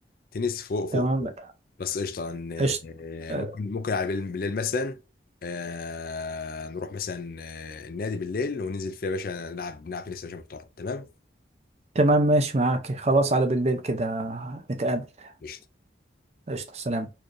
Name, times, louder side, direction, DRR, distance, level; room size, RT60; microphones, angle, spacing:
voice 1, 0.3-1.3 1.8-5.0 5.4-11.1 15.4-15.6, left 4 dB, 50° left, 0.4 m, -32 dB
voice 2, 0.9-1.3 2.6-2.8 3.3-3.5 11.9-15.3 16.5-17.1, right 2 dB, 35° right, 0.5 m, -24 dB
4.3 x 3.2 x 2.5 m
head